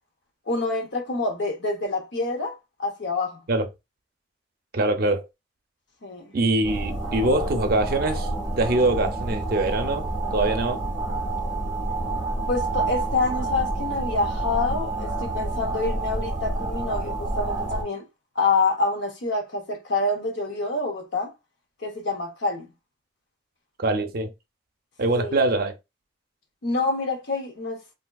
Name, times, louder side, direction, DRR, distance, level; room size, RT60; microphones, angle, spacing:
voice 1, 0.5-3.4 6.0-6.3 12.5-18.0 18.4-21.3 21.8-22.7 25.1-25.4 26.6-27.8, left 3 dB, 65° left, 0.8 m, -27 dB
voice 2, 4.7-5.3 6.3-8.3 8.6-10.8 23.8-24.3 25.0-25.7, right 2 dB, 50° right, 0.5 m, -23 dB
sound 1, 6.6-17.8, right 2 dB, ahead, 1.9 m, -28 dB
3.4 x 2.6 x 2.3 m
head